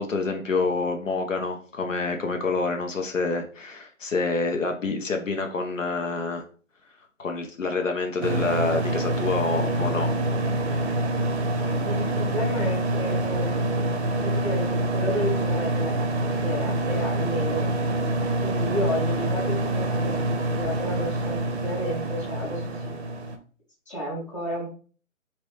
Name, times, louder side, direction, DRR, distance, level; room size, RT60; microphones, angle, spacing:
voice 1, 0.0-6.4 7.2-10.3, left 3 dB, 65° left, 4 dB, 0.7 m, -27 dB
sound 1, 8.2-23.4, right 1 dB, 55° right, 0.6 m, -26 dB
voice 2, 11.8-16.1 16.4-17.7 18.4-23.0 23.9-24.7, equal, 25° left, -5 dB, 0.8 m, -32 dB
3.0 x 2.9 x 3.1 m, 0.39 s
figure-of-eight pair, 165°, 40 cm